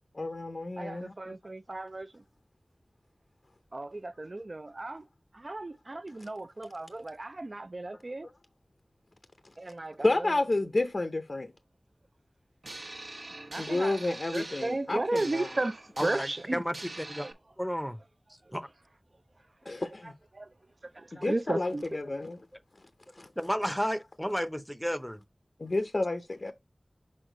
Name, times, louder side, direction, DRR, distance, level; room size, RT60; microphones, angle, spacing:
voice 1, 0.1-1.1 10.0-11.5 13.6-15.5 19.7-20.1 21.1-22.4 23.2-23.3 25.6-26.5, left 2 dB, 60° left, 0.6 m, -30 dB
voice 2, 0.8-2.2 3.7-5.0 5.3-8.3 9.6-10.7 13.5-16.6 17.2-17.3 18.4-18.5 20.0-20.5 20.8-21.8, right 2 dB, 55° right, 0.4 m, -35 dB
sound 1, 12.6-17.3, right 2 dB, 75° right, 1.1 m, -44 dB
voice 3, 16.0-17.3 17.6-18.0 18.5-18.7 23.4-25.2, equal, ahead, 0.6 m, -32 dB
6.4 x 4.2 x 3.8 m
wide cardioid pair, 50°, 0 cm